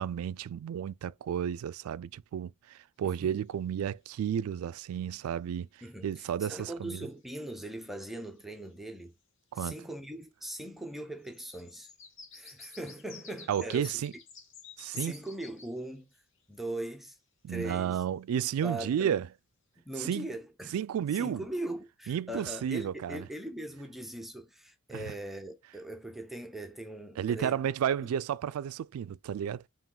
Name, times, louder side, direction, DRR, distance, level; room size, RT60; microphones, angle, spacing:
voice 1, 0.0-7.1 9.5-9.7 13.5-14.1 14.8-15.1 17.4-19.3 20.0-20.3 20.7-21.4 22.1-23.3 24.9-25.1 27.2-29.6, right 9 dB, 90° right, 0.3 m, -32 dB
sound 1, 3.1-3.2 7.6-7.7 8.1-8.7 11.2-16.2 16.6-16.7, left 6 dB, 65° left, 1.3 m, -51 dB
voice 2, 5.8-9.1 9.5-11.9 12.3-13.9 14.9-16.1 16.5-17.2 17.5-18.0 18.6-19.1 19.9-20.7 21.1-27.6, right 1 dB, ahead, 0.6 m, -40 dB
4.9 x 3.0 x 3.7 m
head